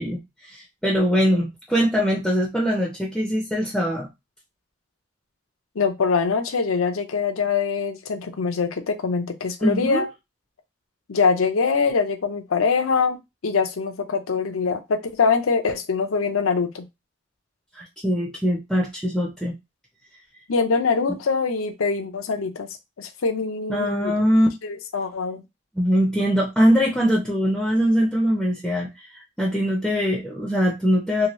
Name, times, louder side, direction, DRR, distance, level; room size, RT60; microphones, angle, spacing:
voice 1, 0.0-4.1 9.6-10.1 17.7-19.5 23.7-24.5 25.8-31.3, equal, ahead, -2 dB, 0.4 m, -22 dB
voice 2, 5.8-10.1 11.1-16.8 20.5-22.7 23.0-24.1 24.6-25.4, left 5 dB, 85° left, 6 dB, 0.6 m, -23 dB
2.8 x 2.6 x 3.0 m, 0.22 s
head